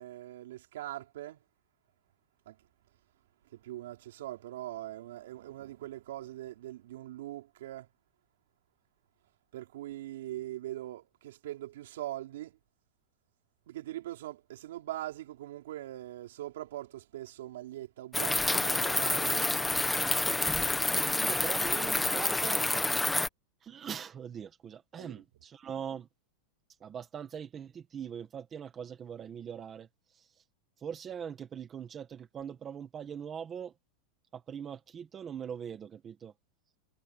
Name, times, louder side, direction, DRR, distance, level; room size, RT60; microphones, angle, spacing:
voice 1, 0.0-1.4 2.5-2.6 3.5-7.9 9.5-12.6 13.7-19.7 25.0-25.2, right 14 dB, 70° right, 4.5 m, -42 dB
sound 1, 18.1-23.3, left 2 dB, 5° left, 1.3 m, -28 dB
voice 2, 20.9-22.6 23.6-26.1 26.8-30.3 30.8-33.7 34.3-36.3, right 8 dB, 15° right, 1.6 m, -42 dB
supercardioid pair, 175°, 0 cm